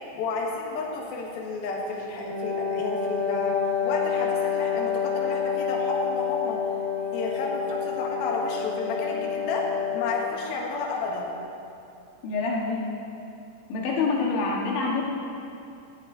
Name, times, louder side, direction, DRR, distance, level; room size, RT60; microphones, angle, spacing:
voice 1, 0.1-3.6 3.8-6.6 7.1-9.6 9.9-11.4, left 3 dB, 65° left, -2 dB, 3.2 m, -31 dB
Wind instrument woodwind instrument, 2.1-10.3, left 7 dB, 45° right, 4.0 m, -28 dB
voice 2, 12.2-12.9 13.7-15.0, left 4 dB, 80° left, -2 dB, 4.1 m, -26 dB
18.5 x 13.5 x 4.1 m, 2.6 s
omnidirectional pair, 5.2 m